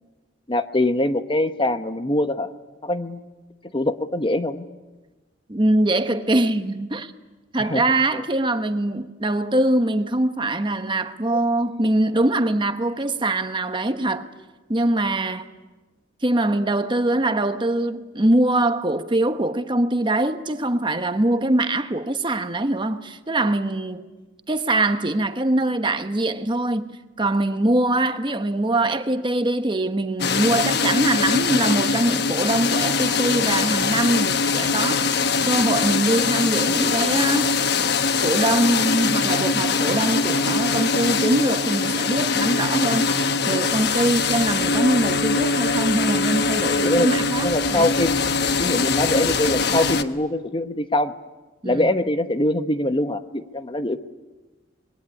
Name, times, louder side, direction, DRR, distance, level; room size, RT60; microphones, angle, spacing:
voice 1, 0.5-2.5 2.8-3.2 3.7-4.7 7.6-7.8 8.1-8.2 46.8-47.1 47.4-48.2 48.6-51.1 51.6-54.0, left 1 dB, 25° left, 1.0 m, -23 dB
voice 2, 5.5-7.1 7.5-14.3 14.7-15.5 16.2-24.1 24.5-37.5 38.2-47.9 51.6-51.9, right 1 dB, 25° right, 1.1 m, -23 dB
sound 1, 30.2-50.0, left 4 dB, 60° left, 1.1 m, -22 dB
26.0 x 22.0 x 10.0 m
head